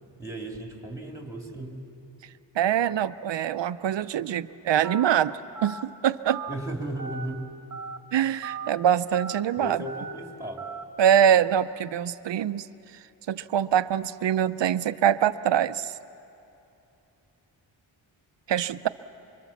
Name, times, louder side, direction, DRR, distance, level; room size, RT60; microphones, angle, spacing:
voice 1, 0.2-1.9 6.5-7.5 9.6-10.7, right 1 dB, 5° right, 1 dB, 2.6 m, -35 dB
voice 2, 2.5-6.4 8.1-9.8 11.0-12.7 13.3-16.0 18.5-18.9, right 9 dB, 70° right, 13 dB, 0.6 m, -24 dB
Telephone, 4.8-5.1 5.5-5.8 6.3-6.5 7.0-7.3 7.7-8.0 8.4-8.7 9.1-9.4 9.9-10.1 10.6-10.8, right 5 dB, 45° right, 1.2 m, -37 dB
26.0 x 24.5 x 7.2 m, 2.8 s
wide cardioid pair, 155°, 45 cm